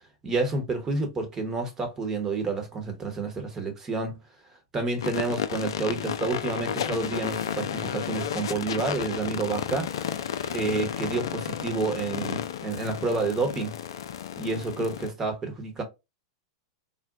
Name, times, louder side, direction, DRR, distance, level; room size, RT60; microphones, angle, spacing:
voice 1, 0.2-4.2 4.7-10.1 10.5-13.7 14.4-15.8, right 3 dB, 20° right, 1.0 m, -29 dB
sound 1, 5.0-15.1, left 9 dB, 70° left, 0.4 m, -32 dB
3.8 x 2.1 x 2.4 m
hypercardioid pair, 100°, 3 cm